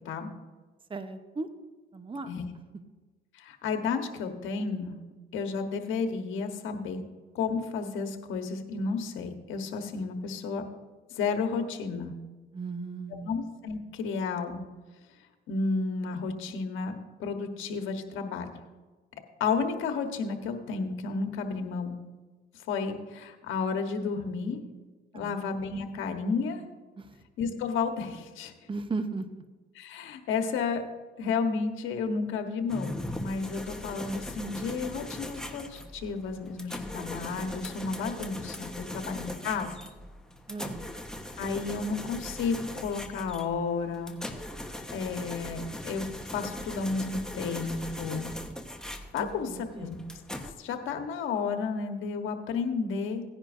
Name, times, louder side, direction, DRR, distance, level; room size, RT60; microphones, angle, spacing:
voice 1, 0.9-1.5 1.9-2.3 12.5-13.3 25.1-25.4 27.0-27.2 28.7-29.4 38.9-39.2 40.5-40.9 49.2-49.9, right 3 dB, 25° right, 8 dB, 0.9 m, -37 dB
voice 2, 3.4-5.0 5.3-7.0 7.3-10.6 11.2-12.1 13.2-14.6 15.5-16.9 17.2-18.5 19.4-22.0 22.7-24.6 25.1-26.6 27.4-28.5 29.7-30.8 31.2-39.7 41.4-44.1 44.9-48.3 49.1-50.0 50.6-53.2, left 5 dB, 90° left, 5 dB, 1.2 m, -32 dB
sound 1, 32.7-50.5, left 1 dB, 5° left, 1.2 m, -40 dB
17.0 x 10.0 x 2.6 m, 1.3 s
cardioid pair, 90°, 20 cm